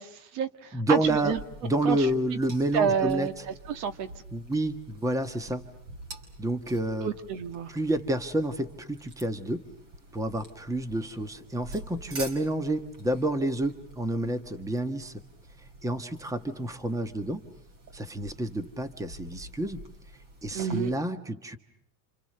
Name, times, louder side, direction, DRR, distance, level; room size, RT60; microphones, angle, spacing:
voice 1, 0.0-1.4 1.8-2.0 2.7-3.3 3.7-4.1 7.0-7.7 20.5-20.9, right 7 dB, 60° right, 10 dB, 2.0 m, -29 dB
voice 2, 0.7-1.3 1.6-3.4 4.3-5.6 6.4-7.1 7.7-9.6 10.1-15.1 15.8-17.4 17.9-19.8 20.4-21.6, right 1 dB, 5° right, 10 dB, 1.5 m, -29 dB
sound 1, 1.0-21.0, right 2 dB, 40° right, 5.1 m, -48 dB
29.0 x 28.0 x 6.8 m, 0.73 s
supercardioid pair, 135°, 49 cm